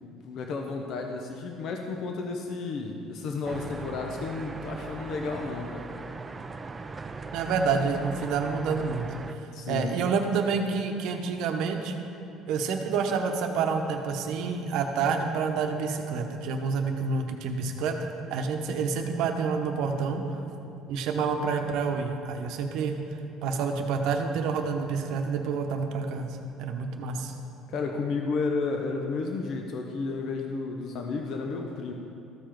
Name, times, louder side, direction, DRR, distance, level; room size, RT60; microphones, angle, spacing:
voice 1, 0.0-5.9 9.4-9.9 27.7-31.9, left 4 dB, 60° left, 3 dB, 0.7 m, -32 dB
sound 1, 3.4-9.3, right 3 dB, 20° right, 0.4 m, -39 dB
voice 2, 7.3-11.9 12.5-20.2 20.9-23.0 23.4-27.3, right 5 dB, 70° right, 4 dB, 0.8 m, -28 dB
13.5 x 4.8 x 4.5 m, 2.7 s
cardioid pair, 120°, 0 cm